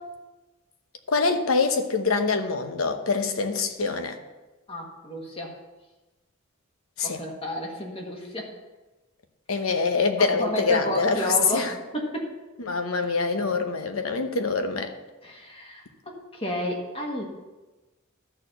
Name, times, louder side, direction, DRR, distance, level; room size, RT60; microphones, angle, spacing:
voice 1, 1.1-4.2 7.0-7.2 9.5-11.7 12.7-14.9, left 4 dB, 80° left, 7 dB, 0.9 m, -25 dB
voice 2, 4.7-5.6 7.0-8.5 10.2-12.3 15.2-17.2, left 1 dB, 25° left, 0 dB, 1.6 m, -31 dB
12.5 x 4.4 x 6.7 m, 1.1 s
head